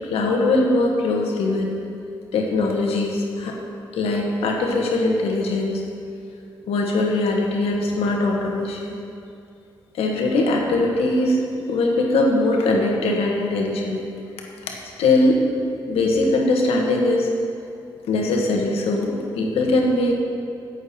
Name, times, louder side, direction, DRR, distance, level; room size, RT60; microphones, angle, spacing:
voice 1, 0.0-1.7 2.3-3.5 3.9-5.8 6.7-8.8 9.9-11.4 11.7-14.0 15.0-15.4 15.9-17.3 18.1-20.2, left 2 dB, 85° left, 0 dB, 1.4 m, -21 dB
12.0 x 8.2 x 4.3 m, 2.5 s
supercardioid pair, 50°, 10 cm